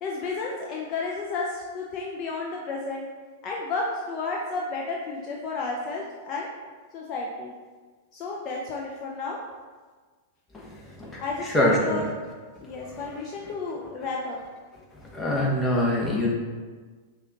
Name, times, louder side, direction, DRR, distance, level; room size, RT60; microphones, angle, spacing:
voice 1, 0.0-3.1 3.4-6.5 6.9-7.5 8.1-9.4 11.2-12.1 12.6-14.4, left 3 dB, 40° left, -2 dB, 0.6 m, -32 dB
voice 2, 10.5-12.1 12.7-13.5 14.9-16.3, left 1 dB, 15° left, -3 dB, 1.1 m, -26 dB
5.6 x 2.4 x 3.9 m, 1.5 s
hypercardioid pair, 100°, 0 cm